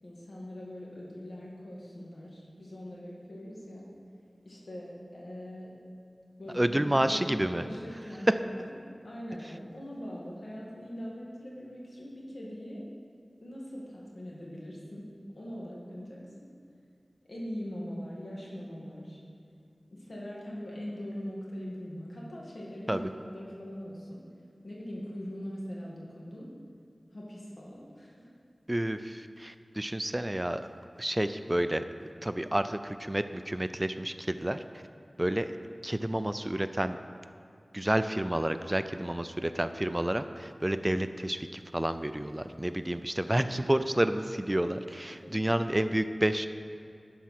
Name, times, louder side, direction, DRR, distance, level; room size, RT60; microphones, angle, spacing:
voice 1, 0.0-3.9 4.5-5.7 6.4-8.7 9.0-12.8 13.4-15.0 15.4-16.2 17.3-19.2 19.9-24.2 24.6-26.5 27.1-28.3 45.2-45.4, equal, 80° left, -4 dB, 1.9 m, -41 dB
voice 2, 6.5-7.6 22.9-23.1 28.7-30.7 31.0-31.8 32.2-34.6 35.2-35.6 35.8-37.0 37.7-46.5, right 1 dB, 20° right, 10 dB, 0.3 m, -30 dB
11.0 x 4.8 x 6.0 m, 2.3 s
wide cardioid pair, 50°, 0 cm